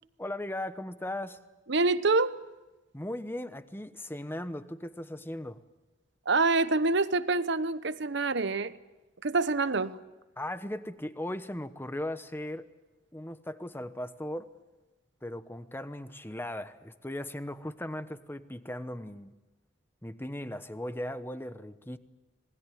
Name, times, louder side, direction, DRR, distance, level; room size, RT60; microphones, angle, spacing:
voice 1, 0.2-1.4 2.9-5.6 10.4-12.7 13.1-14.5 15.2-19.3 20.0-22.0, left 1 dB, 10° left, 1.0 m, -38 dB
voice 2, 1.7-2.4 6.3-8.7 9.2-10.0, right 3 dB, 65° right, 1.0 m, -26 dB
27.0 x 20.0 x 9.3 m
head